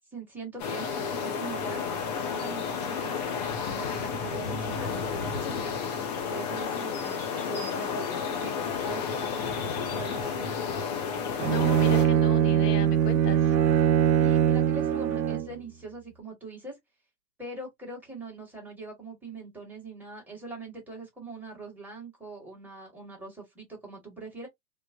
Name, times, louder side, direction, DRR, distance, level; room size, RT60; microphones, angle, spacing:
voice 1, 0.1-1.8 2.3-5.8 6.3-9.6 10.0-10.5 14.2-16.7 17.4-24.5, right 3 dB, 5° right, 1.2 m, -42 dB
sound 1, 0.6-12.1, left 6 dB, 25° left, 0.4 m, -32 dB
Bowed string instrument, 11.4-15.6, right 10 dB, 90° right, 0.6 m, -22 dB
voice 2, 11.5-13.6, left 6 dB, 70° left, 1.0 m, -35 dB
3.1 x 2.1 x 2.4 m
hypercardioid pair, 125°, 50 cm